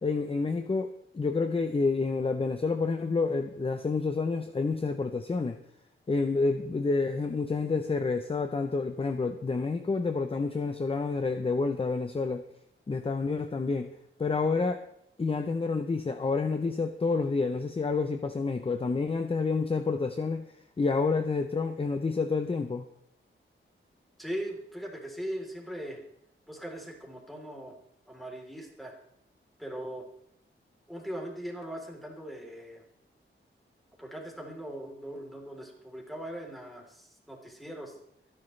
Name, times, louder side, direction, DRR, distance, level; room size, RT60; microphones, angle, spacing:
voice 1, 0.0-5.6 6.1-12.4 12.9-13.9 14.2-14.8 15.2-20.5 20.8-22.8, left 4 dB, 25° left, 7 dB, 0.7 m, -29 dB
voice 2, 24.2-26.0 26.5-27.8 28.1-28.9 29.6-30.1 30.9-32.8 34.0-37.9, equal, ahead, 0 dB, 3.6 m, -40 dB
25.0 x 10.5 x 3.3 m, 0.75 s
wide cardioid pair, 140°, 21 cm